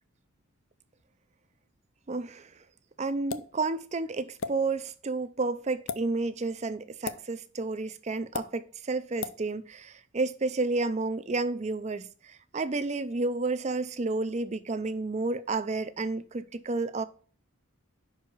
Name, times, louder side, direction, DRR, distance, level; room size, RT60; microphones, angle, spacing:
voice 1, 2.1-2.5 3.0-17.0, right 3 dB, 30° right, 0.5 m, -31 dB
sound 1, 3.3-3.5 4.4-4.5 5.8-6.0 7.0-7.2 8.3-8.5 9.2-9.4, left 5 dB, 65° left, 0.5 m, -34 dB
5.6 x 4.7 x 6.1 m
head